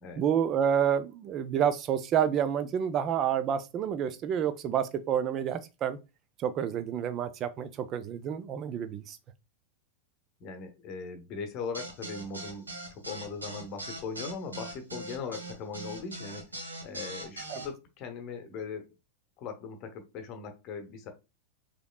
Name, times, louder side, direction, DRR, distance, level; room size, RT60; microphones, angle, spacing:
voice 1, 0.2-6.0 6.4-9.2 17.5-17.6, right 9 dB, 30° right, 0.4 m, -29 dB
voice 2, 10.4-16.4 16.8-18.9 19.4-21.1, left 5 dB, 35° left, 0.8 m, -39 dB
sound 1, 11.7-17.7, right 1 dB, 80° right, 1.1 m, -40 dB
4.9 x 3.0 x 2.3 m
figure-of-eight pair, 90°, 0 cm